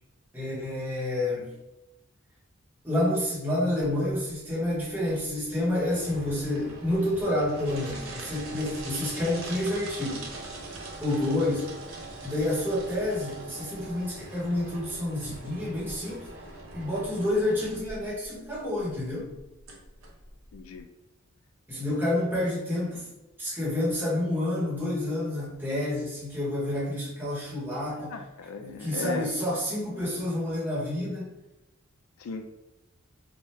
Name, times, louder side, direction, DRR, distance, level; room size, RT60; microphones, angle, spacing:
voice 1, 0.3-1.5 2.8-10.2 11.0-11.7 12.2-16.3 16.7-19.3 21.7-23.1 23.4-28.2 28.6-31.3, left 1 dB, 10° right, -8 dB, 1.0 m, -29 dB
sound 1, 3.8-20.8, right 2 dB, 75° right, 0.7 m, -42 dB
voice 2, 20.5-20.9 27.9-29.3 32.2-32.5, left 5 dB, 75° left, 7 dB, 0.4 m, -37 dB
2.8 x 2.3 x 3.2 m, 0.94 s
head